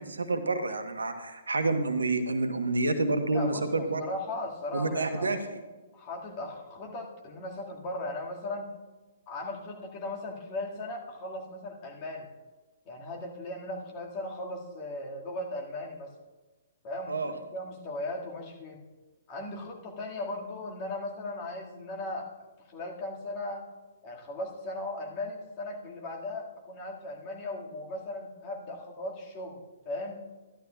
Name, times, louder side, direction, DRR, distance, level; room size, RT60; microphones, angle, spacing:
voice 1, 0.0-4.0 4.7-5.4 17.1-17.3, right 2 dB, 75° right, 7 dB, 1.0 m, -28 dB
voice 2, 3.3-5.3 5.9-8.7 9.3-12.3 12.9-16.1 16.8-18.8 19.3-22.3 22.7-23.7 24.0-30.2, left 2 dB, 35° left, -1 dB, 1.9 m, -37 dB
14.0 x 11.5 x 2.3 m, 1.2 s
figure-of-eight pair, 120°, 0 cm